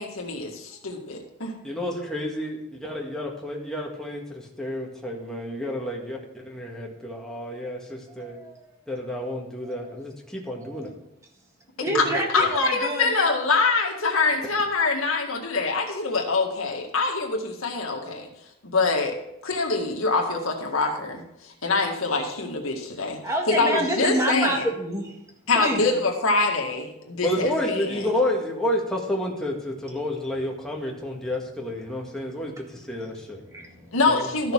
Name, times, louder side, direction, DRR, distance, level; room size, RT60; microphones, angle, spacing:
voice 1, 0.0-1.5 11.9-18.3 18.6-19.2 19.4-23.2 23.5-24.6 25.5-28.1 33.9-34.5, left 3 dB, 85° left, 1 dB, 1.9 m, -25 dB
voice 2, 1.6-8.4 8.9-10.9 12.0-12.1 27.2-33.4 34.1-34.3, left 1 dB, 5° left, -2 dB, 1.7 m, -30 dB
voice 3, 8.1-8.8 9.6-9.9 10.5-10.9 11.8-13.2 23.2-25.2 25.5-26.0 33.0-34.0, right 1 dB, 15° right, 0 dB, 1.8 m, -29 dB
13.5 x 6.6 x 4.7 m, 0.84 s
head